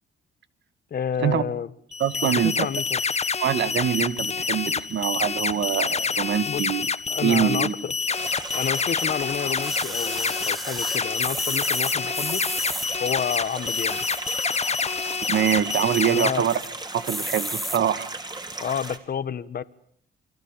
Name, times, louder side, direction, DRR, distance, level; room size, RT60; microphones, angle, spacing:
voice 1, 0.9-1.7 2.2-3.0 6.5-6.6 7.1-7.9 8.5-12.4 13.0-14.1 16.1-16.5 18.6-19.6, left 8 dB, 50° left, 1.5 m, -29 dB
sound 1, 1.9-16.3, left 5 dB, 30° left, 1.4 m, -27 dB
voice 2, 2.0-2.7 3.4-6.9 7.2-7.7 15.3-16.6 16.9-18.1, right 9 dB, 65° right, 2.3 m, -24 dB
sound 2, 8.1-19.0, right 2 dB, 20° right, 4.1 m, -36 dB
sound 3, 9.6-12.9 13.6-14.4 14.8-14.9 15.1-15.2 15.6-16.0 16.5-16.7 17.0-17.8 18.5-18.6, equal, ahead, 1.2 m, -33 dB
28.5 x 24.0 x 8.5 m
cardioid pair, 90°, 20 cm